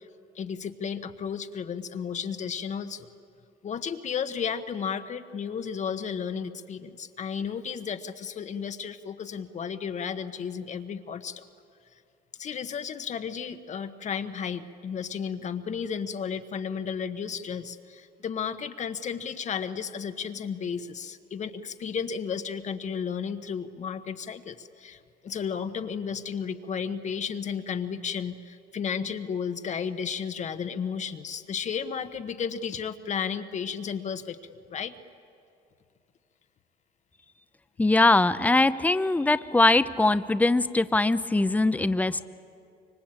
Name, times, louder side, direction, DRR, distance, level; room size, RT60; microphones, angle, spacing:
voice 1, 0.3-3.1 3.6-11.4 12.4-34.9, left 7 dB, 45° left, 9 dB, 1.2 m, -33 dB
voice 2, 37.8-42.3, left 2 dB, 10° left, 13 dB, 0.7 m, -22 dB
25.5 x 23.5 x 8.9 m, 2.5 s
cardioid pair, 110°, 17 cm